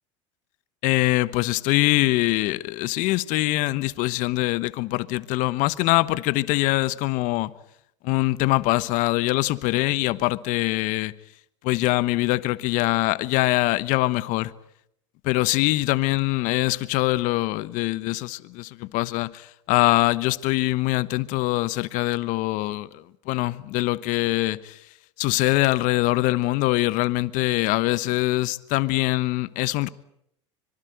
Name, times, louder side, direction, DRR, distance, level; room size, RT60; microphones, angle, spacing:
voice 1, 0.8-7.5 8.0-11.1 11.6-14.5 15.2-24.8 25.2-29.9, left 19 dB, 55° left, 1.1 m, -23 dB
25.0 x 24.0 x 8.0 m
hypercardioid pair, 85°, 16 cm